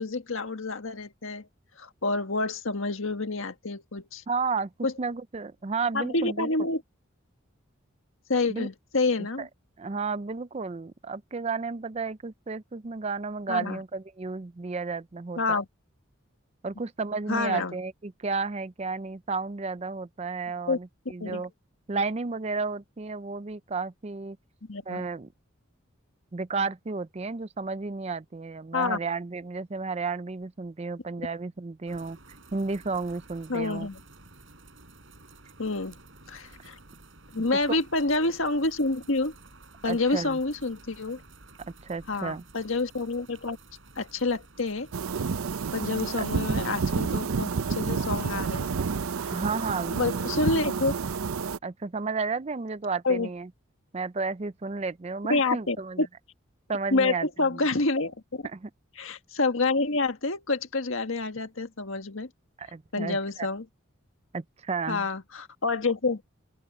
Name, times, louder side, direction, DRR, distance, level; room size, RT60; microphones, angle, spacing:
voice 1, 0.0-1.5 1.8-4.2 4.8-4.9 5.9-6.8 8.3-9.5 13.5-13.8 15.4-15.6 17.3-17.7 20.7-20.8 21.2-21.4 24.7-25.0 28.7-29.0 33.5-34.0 35.6-36.0 36.3-36.8 37.3-39.3 39.8-41.2 42.1-43.6 43.9-44.9 45.7-48.7 49.2-49.3 49.9-50.9 53.0-53.3 55.3-56.1 56.9-58.5 59.0-62.3 62.9-63.6 64.9-66.2, left 3 dB, 70° left, 1.7 m, -28 dB
voice 2, 4.3-6.5 8.5-8.7 9.4-9.5 9.8-15.6 16.6-21.5 21.9-24.4 24.9-25.3 26.3-32.2 32.5-33.9 37.5-37.9 39.8-40.4 41.8-42.4 49.3-50.0 51.6-53.5 53.9-56.0 56.7-57.6 58.4-58.7 62.6-63.5 64.3-65.1, right 4 dB, 30° right, 0.5 m, -32 dB
sound 1, 31.9-46.7, right 3 dB, 65° right, 7.5 m, -52 dB
sound 2, 44.9-51.6, right 5 dB, 90° right, 0.6 m, -29 dB
open air
head